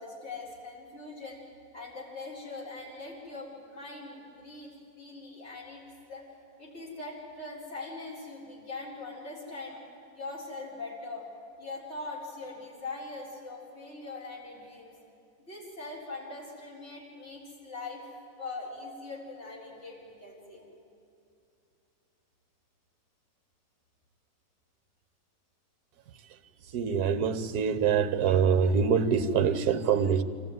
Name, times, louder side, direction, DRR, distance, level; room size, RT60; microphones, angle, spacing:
voice 1, 0.0-1.4 1.7-4.7 5.0-5.8 6.1-6.3 6.6-9.8 10.1-11.3 11.6-14.9 15.5-18.0 18.4-20.7, left 3 dB, 35° left, -5 dB, 4.6 m, -41 dB
voice 2, 26.7-30.2, right 7 dB, 65° right, 11 dB, 1.4 m, -25 dB
25.5 x 14.5 x 9.3 m, 2.6 s
omnidirectional pair, 1.9 m